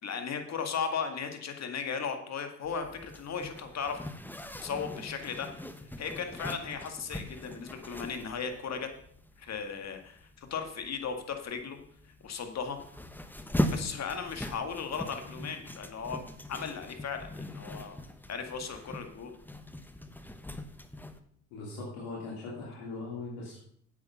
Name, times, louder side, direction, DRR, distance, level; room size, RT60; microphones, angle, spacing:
voice 1, 0.0-4.0 4.6-5.6 6.0-8.9 9.4-11.8 12.2-12.8 13.7-16.2 16.5-18.0 18.3-19.3, left 6 dB, 50° left, 6 dB, 2.1 m, -36 dB
Zipper (clothing), 2.6-21.2, left 1 dB, 5° left, 1.1 m, -40 dB
voice 2, 21.5-23.6, left 3 dB, 80° left, -4 dB, 3.1 m, -40 dB
8.6 x 8.5 x 5.8 m, 0.64 s
supercardioid pair, 65°, 35 cm